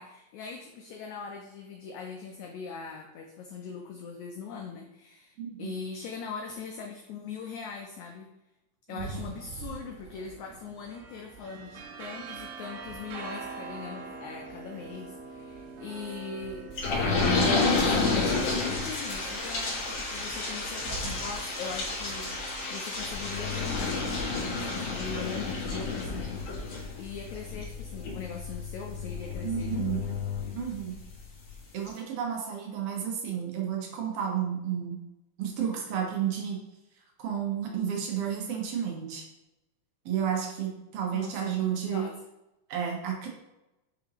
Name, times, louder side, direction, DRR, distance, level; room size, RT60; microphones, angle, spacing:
voice 1, 0.0-8.3 8.9-16.6 17.5-30.2 41.1-42.2, left 5 dB, 80° left, 2 dB, 1.7 m, -41 dB
voice 2, 5.4-5.7 8.9-9.3 29.4-30.0 30.5-30.9 31.7-35.0 35.4-36.6 37.2-39.2 40.0-42.1 42.7-43.3, right 8 dB, 75° right, 0 dB, 1.3 m, -31 dB
sound 1, 9.0-22.8, right 4 dB, 90° right, 2.4 m, -44 dB
sound 2, 16.8-31.1 31.5-31.6 31.9-32.0, left 3 dB, 50° left, 2.6 m, -30 dB
8.6 x 3.7 x 3.0 m, 0.94 s
omnidirectional pair, 4.0 m